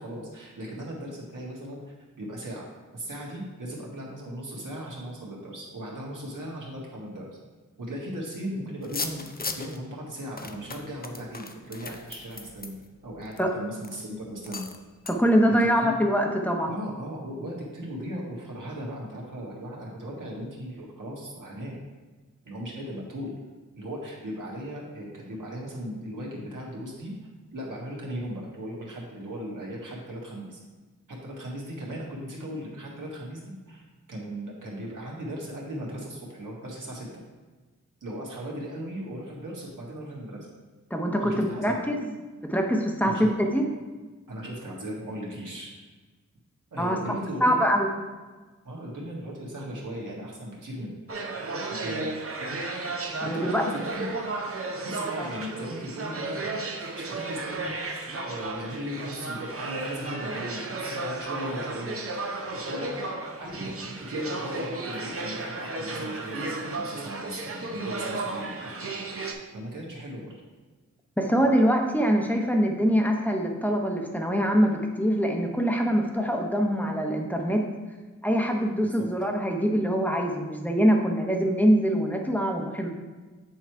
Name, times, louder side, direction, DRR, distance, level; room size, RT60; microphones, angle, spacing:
voice 1, 0.0-7.3 7.8-9.3 9.6-12.8 13.0-14.7 15.6-15.9 16.7-21.7 22.4-23.3 23.7-27.1 27.5-30.6 31.1-33.8 34.1-37.2 38.0-40.5 41.2-41.8 43.0-43.3 44.3-45.7 46.7-47.6 48.6-52.2 53.2-54.3 54.8-56.6 57.0-57.9 58.2-62.2 62.6-68.9 69.5-70.3 78.8-79.1, equal, 75° right, -4 dB, 1.7 m, -37 dB
sound 1, 8.8-9.8 10.4-13.4 13.8-14.0 14.5-14.8 15.1-15.2, left 3 dB, 30° left, 0.6 m, -37 dB
voice 2, 15.1-16.7 40.9-42.0 42.4-43.7 46.8-47.0 47.4-47.9 53.2-53.6 55.2-55.3 71.2-77.6 78.2-82.9, equal, 5° left, 2 dB, 0.9 m, -24 dB
sound 2, 51.1-69.3, right 2 dB, 45° right, 0.9 m, -34 dB
8.3 x 3.1 x 4.6 m, 1.3 s
cardioid pair, 50°, 32 cm